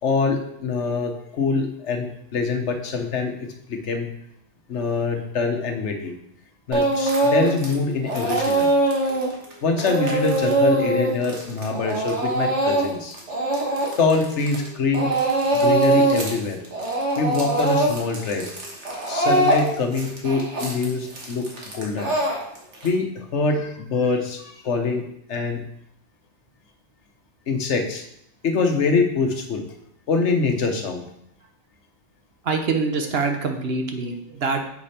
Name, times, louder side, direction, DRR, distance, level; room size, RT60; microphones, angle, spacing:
voice 1, 0.0-4.1 4.7-6.1 6.7-8.7 9.6-13.2 14.0-15.1 15.5-16.6 17.2-18.5 19.0-22.1 22.8-25.6 27.5-28.0 28.4-29.6 30.1-31.0, left 4 dB, 85° left, 4 dB, 1.3 m, -24 dB
Speech / Crying sobbing, 6.7-7.7 8.0-14.7 14.9-16.4 16.6-22.9, right 2 dB, 90° right, 1.8 m, -22 dB
voice 2, 32.4-34.7, right 4 dB, 60° right, 4 dB, 1.1 m, -25 dB
7.3 x 5.1 x 4.3 m, 0.75 s
omnidirectional pair, 1.2 m